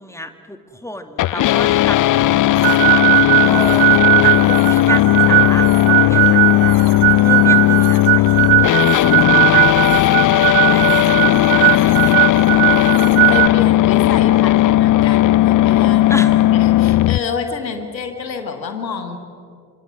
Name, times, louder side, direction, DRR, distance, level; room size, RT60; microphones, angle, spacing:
voice 1, 0.0-2.9 3.4-10.0 10.3-13.6 16.1-16.3, left 1 dB, 5° left, 8 dB, 2.1 m, -32 dB
sound 1, 1.2-17.2, left 15 dB, 40° left, 0.5 m, -15 dB
sound 2, 2.6-13.5, right 25 dB, 65° right, 0.7 m, -17 dB
voice 2, 13.3-19.2, left 6 dB, 90° left, 7 dB, 1.4 m, -28 dB
27.0 x 25.5 x 6.2 m, 2.3 s
figure-of-eight pair, 45°, 50 cm